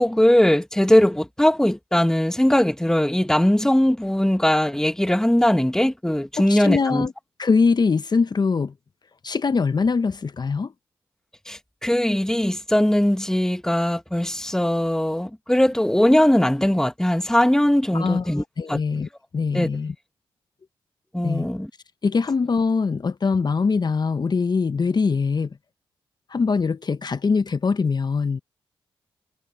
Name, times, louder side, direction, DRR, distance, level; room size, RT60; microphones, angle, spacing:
voice 1, 0.0-7.1 11.5-18.4 18.7-18.8 19.5-19.7 21.1-21.7, left 1 dB, 5° left, 1.3 m, -20 dB
voice 2, 6.4-7.1 7.4-8.7 9.2-10.7 17.9-19.9 21.2-21.5 22.0-25.6 26.3-28.4, left 4 dB, 45° left, 1.1 m, -22 dB
supercardioid pair, 45°, 10 cm